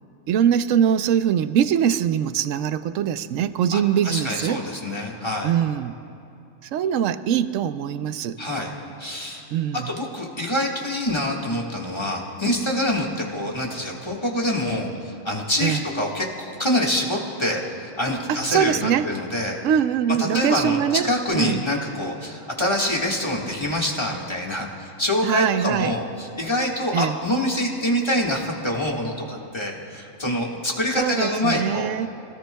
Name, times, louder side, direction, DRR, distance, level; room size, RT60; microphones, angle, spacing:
voice 1, 0.3-4.6 5.4-5.9 6.6-8.4 9.5-9.9 15.6-15.8 18.3-19.1 19.6-21.1 21.3-21.7 25.2-26.0 26.9-27.2 31.0-32.1, right 9 dB, 75° right, 12 dB, 0.9 m, -22 dB
voice 2, 3.7-5.5 8.4-8.7 9.0-9.4 9.9-19.6 20.2-31.9, left 1 dB, 20° left, -2 dB, 1.6 m, -25 dB
27.0 x 17.5 x 2.3 m, 2.7 s
omnidirectional pair, 1.4 m